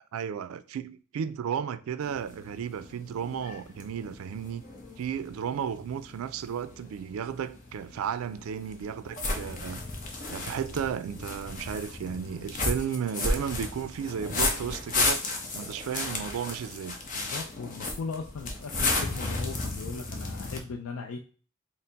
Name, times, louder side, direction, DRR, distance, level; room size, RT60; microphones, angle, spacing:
voice 1, 0.1-4.6 5.0-9.8 10.3-15.2 15.5-17.0, right 8 dB, 85° right, 0.3 m, -34 dB
sound 1, 2.0-20.6, left 2 dB, 40° left, 0.7 m, -34 dB
voice 2, 17.1-21.2, left 4 dB, 85° left, 0.4 m, -38 dB
4.2 x 2.0 x 3.9 m
head